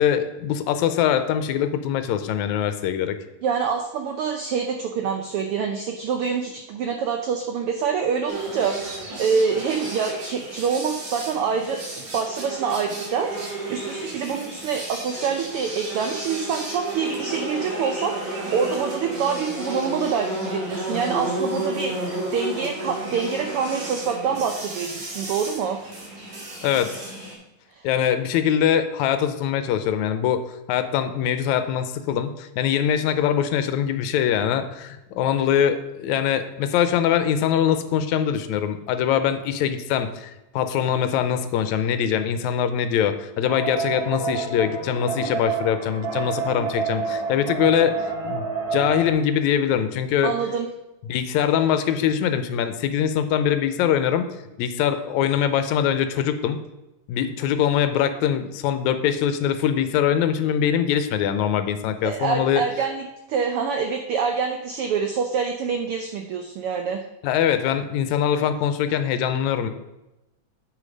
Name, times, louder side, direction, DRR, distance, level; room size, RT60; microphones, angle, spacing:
voice 1, 0.0-3.2 26.6-27.0 27.8-48.0 48.2-48.5 48.7-50.3 51.1-54.3 54.6-56.6 57.1-62.6 67.2-69.7, left 9 dB, 85° left, 10 dB, 2.0 m, -23 dB
voice 2, 3.4-25.8 27.7-27.9 50.2-50.7 62.0-67.0, right 6 dB, 90° right, 5 dB, 1.2 m, -26 dB
sound 1, 8.3-27.3, right 1 dB, 70° right, 3.6 m, -32 dB
sound 2, 43.4-49.1, right 4 dB, 50° right, 1.8 m, -28 dB
7.7 x 6.6 x 5.1 m, 0.97 s
omnidirectional pair, 3.3 m